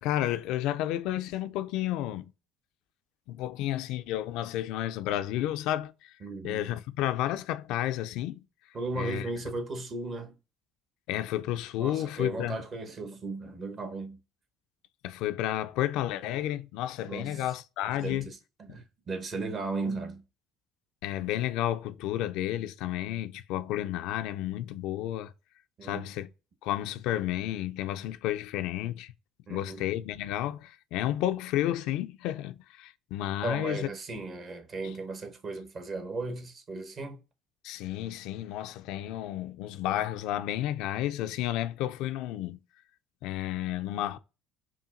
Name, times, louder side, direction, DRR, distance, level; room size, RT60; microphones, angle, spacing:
voice 1, 0.0-2.3 3.3-6.1 6.4-8.4 9.0-9.3 11.1-12.6 15.0-18.3 18.7-18.8 21.0-25.3 25.8-26.3 26.6-29.1 29.5-33.9 34.8-34.9 37.6-42.6 43.2-44.2, left 13 dB, 70° left, 0.3 m, -31 dB
voice 2, 6.2-6.7 8.7-10.3 11.8-14.2 17.1-17.5 18.0-20.2 25.8-26.1 29.5-29.8 33.4-37.2, right 3 dB, 45° right, 1.0 m, -36 dB
5.8 x 2.2 x 2.5 m
hypercardioid pair, 70°, 0 cm